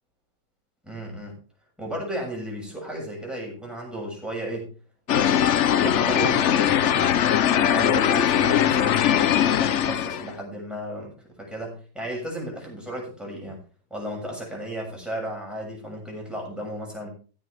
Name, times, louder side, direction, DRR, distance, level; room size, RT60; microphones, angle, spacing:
voice 1, 0.8-1.4 1.8-4.7 5.1-7.1 7.5-13.6 13.9-17.1, equal, ahead, -2 dB, 6.8 m, -34 dB
sound 1, 5.1-10.3, left 9 dB, 75° left, 0.6 m, -21 dB
15.5 x 11.0 x 3.4 m, 0.38 s
omnidirectional pair, 2.1 m